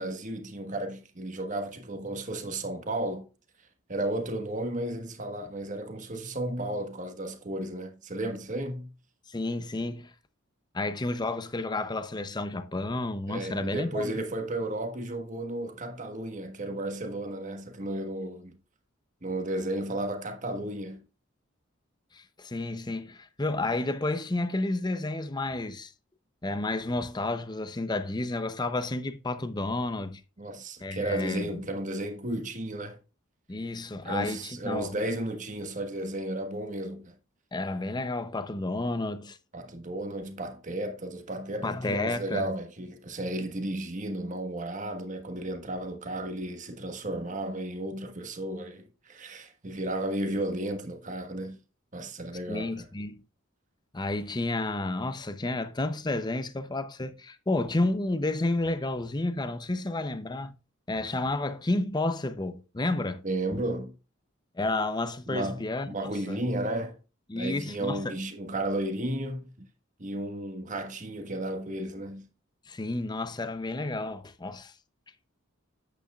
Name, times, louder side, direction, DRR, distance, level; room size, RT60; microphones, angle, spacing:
voice 1, 0.0-3.3 3.9-8.9 13.3-18.6 19.2-21.0 30.4-33.0 34.0-37.1 39.5-51.6 51.9-52.9 63.2-63.9 65.3-67.0 67.3-69.7 70.0-72.3, right 1 dB, 40° right, 1.3 m, -33 dB
voice 2, 9.3-10.1 10.7-14.1 22.1-25.9 26.4-30.2 30.8-31.5 33.5-35.0 37.5-39.4 41.6-42.5 52.5-53.2 53.9-60.6 60.9-63.2 63.5-63.6 64.6-66.4 67.3-68.1 72.7-74.7, left 2 dB, 20° left, 0.6 m, -31 dB
9.0 x 8.4 x 2.4 m
head